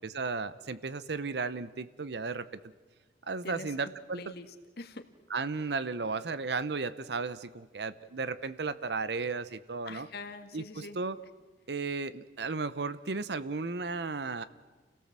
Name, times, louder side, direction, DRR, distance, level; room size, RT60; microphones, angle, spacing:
voice 1, 0.1-2.6 3.3-4.2 5.3-10.1 10.5-11.2 11.7-14.4, right 4 dB, 70° right, 15 dB, 0.8 m, -34 dB
voice 2, 3.4-3.7 4.1-5.1 9.9-11.0, left 3 dB, 60° left, 8 dB, 1.7 m, -44 dB
29.0 x 17.5 x 7.5 m, 1.3 s
head